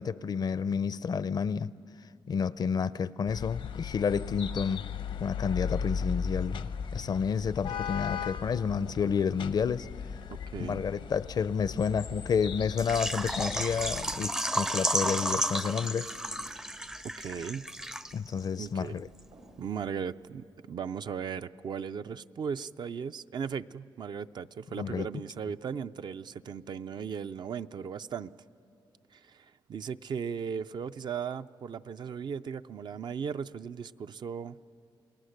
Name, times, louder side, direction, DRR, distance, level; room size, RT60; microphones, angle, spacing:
voice 1, 0.0-1.7 2.3-4.8 5.2-9.9 10.6-16.1 18.1-19.1 24.8-25.1, left 6 dB, 50° left, 0.5 m, -30 dB
sound 1, 3.3-14.2, left 6 dB, 80° left, 0.8 m, -37 dB
Thump thud, 7.7-12.7 13.0-13.6 13.9-20.0, right 1 dB, 90° right, 6.5 m, -59 dB
voice 2, 10.3-10.8 17.2-17.7 18.6-19.0 19.6-28.3 29.1-34.6, right 7 dB, 60° right, 0.5 m, -37 dB
Water / Liquid, 12.8-18.4 18.6-18.7 19.2-19.3, right 1 dB, 5° right, 0.4 m, -32 dB
29.5 x 19.0 x 6.6 m
cardioid pair, 80°, 9 cm